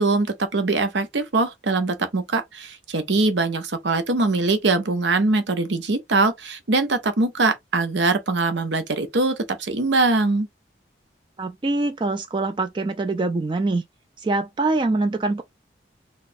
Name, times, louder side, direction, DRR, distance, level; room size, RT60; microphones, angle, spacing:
voice 1, 0.0-10.5, right 3 dB, 80° right, 0.8 m, -22 dB
voice 2, 11.4-13.8 14.2-15.4, right 2 dB, 25° right, 0.3 m, -24 dB
4.1 x 2.4 x 2.6 m
head